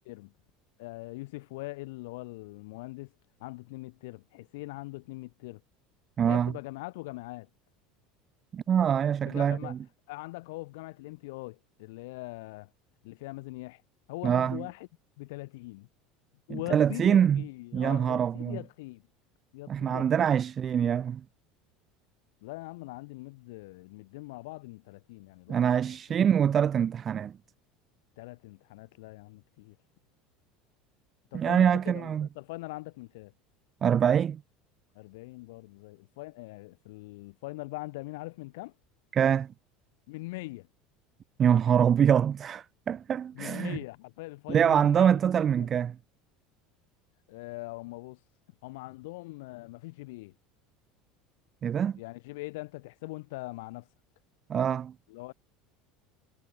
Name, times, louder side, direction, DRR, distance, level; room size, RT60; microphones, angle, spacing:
voice 1, 0.8-3.1 3.4-5.6 6.2-7.5 9.2-9.8 10.1-12.7 13.0-13.8 14.1-14.9 15.2-15.9 16.5-19.0 19.5-20.4 22.4-26.0 28.2-29.8 31.3-33.3 34.9-38.7 40.1-40.7 43.3-45.2 45.6-45.7 47.3-48.2 48.6-50.3 52.0-53.9 55.1-55.3, left 22 dB, 80° left, 7.8 m, -42 dB
voice 2, 6.2-6.5 8.5-9.8 14.2-14.6 16.5-17.4 17.7-18.6 19.7-21.2 25.5-27.3 31.3-32.3 33.8-34.4 39.1-39.5 41.4-43.8 44.5-45.9 51.6-52.0 54.5-54.9, right 8 dB, 25° right, 1.7 m, -24 dB
cardioid pair, 165°, 0 cm